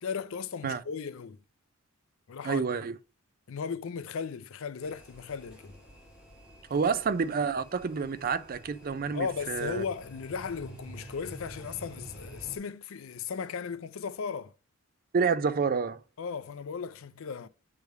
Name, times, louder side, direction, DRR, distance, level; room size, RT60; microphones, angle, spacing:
voice 1, 0.0-1.4 2.3-2.6 3.5-5.8 6.7-6.9 9.1-14.5 16.2-17.5, left 6 dB, 65° left, 0.4 m, -36 dB
voice 2, 2.4-2.9 6.7-9.8 15.1-16.0, right 5 dB, 40° right, 0.4 m, -28 dB
sound 1, 4.8-12.6, right 1 dB, 5° right, 1.9 m, -49 dB
6.6 x 3.3 x 4.6 m
head